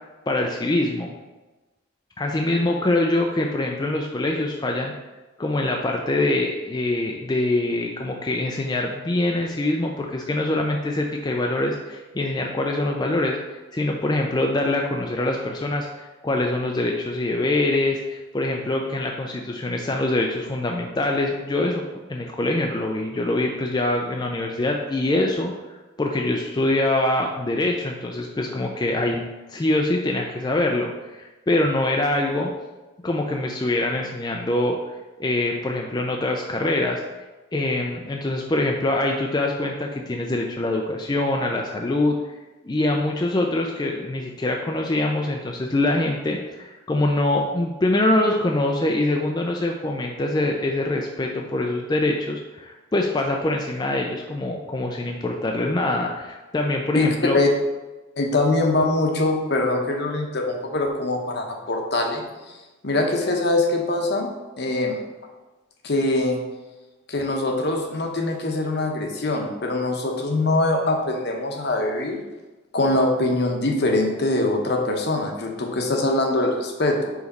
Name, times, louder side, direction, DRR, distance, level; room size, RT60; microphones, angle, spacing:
voice 1, 0.3-1.1 2.2-4.9 5.4-21.8 22.1-25.5 26.0-32.5 33.0-34.8 35.2-37.0 37.5-42.2 42.6-57.4, left 2 dB, 20° left, 1 dB, 0.4 m, -24 dB
voice 2, 58.2-62.2 62.8-64.3 64.6-65.0 65.8-66.4 67.1-72.2 72.7-77.1, left 2 dB, 55° left, 2 dB, 0.9 m, -23 dB
4.9 x 4.0 x 5.3 m, 1.2 s
head